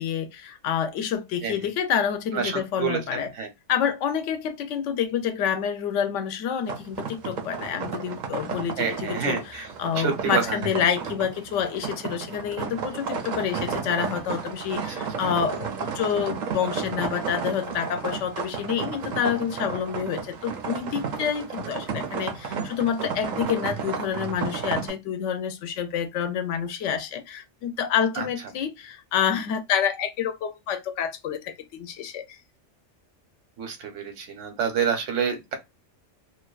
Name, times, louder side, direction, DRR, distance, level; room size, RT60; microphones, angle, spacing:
voice 1, 0.0-3.3 3.7-32.4, left 8 dB, 85° left, 0.9 m, -28 dB
voice 2, 2.3-3.5 8.8-9.7 10.0-10.6 28.2-28.3 33.6-35.5, right 6 dB, 90° right, 1.1 m, -28 dB
sound 1, 6.7-24.9, right 5 dB, 60° right, 0.5 m, -33 dB
2.5 x 2.3 x 2.2 m
omnidirectional pair, 1.2 m